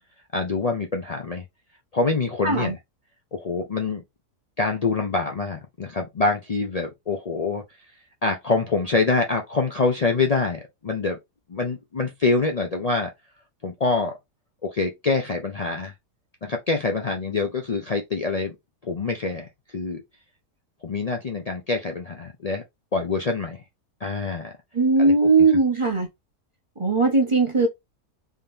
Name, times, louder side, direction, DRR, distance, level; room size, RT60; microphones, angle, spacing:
voice 1, 0.3-1.4 1.9-2.8 3.3-4.0 4.6-7.6 8.2-11.2 11.5-13.1 13.6-14.2 14.6-15.9 16.4-18.6 18.8-20.0 20.8-22.6 22.9-23.6 24.0-24.5 25.0-25.1, left 3 dB, 80° left, 0.3 m, -25 dB
voice 2, 2.4-2.7 24.7-26.1 26.8-27.7, right 3 dB, 25° right, 0.8 m, -19 dB
3.6 x 3.5 x 2.7 m
omnidirectional pair, 1.7 m